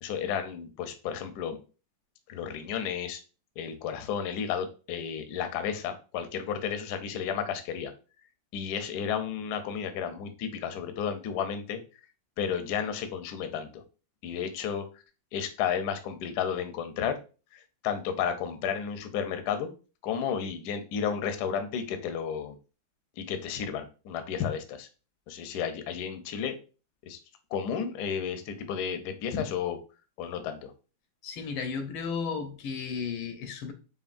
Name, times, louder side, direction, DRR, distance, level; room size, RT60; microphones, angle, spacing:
voice 1, 0.0-1.6 2.3-3.2 3.6-7.9 8.5-11.8 12.4-13.8 14.2-14.9 15.3-17.2 17.5-19.7 20.0-22.5 23.2-24.9 25.3-26.5 27.1-27.2 27.5-29.8 30.2-30.7, left 7 dB, 70° left, 1.0 m, -32 dB
voice 2, 31.2-33.7, left 5 dB, 90° left, 1.5 m, -34 dB
5.1 x 2.6 x 2.5 m
omnidirectional pair, 2.2 m